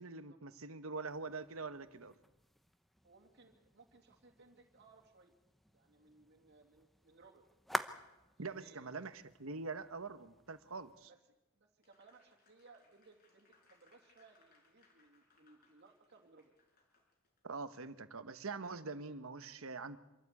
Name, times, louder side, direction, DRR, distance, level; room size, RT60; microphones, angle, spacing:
voice 1, 0.0-2.1 8.4-11.1 17.4-20.0, right 4 dB, 70° right, 12 dB, 1.2 m, -44 dB
sound 1, 1.1-11.1, equal, ahead, 0.7 m, -49 dB
voice 2, 3.0-5.4 5.7-7.5 8.4-8.9 11.1-11.2 11.5-16.5 18.6-19.2, right 3 dB, 50° right, 1 dB, 2.7 m, -63 dB
Applause, 11.8-17.4, left 4 dB, 45° left, 5.2 m, -72 dB
25.5 x 14.0 x 8.4 m, 1.0 s
head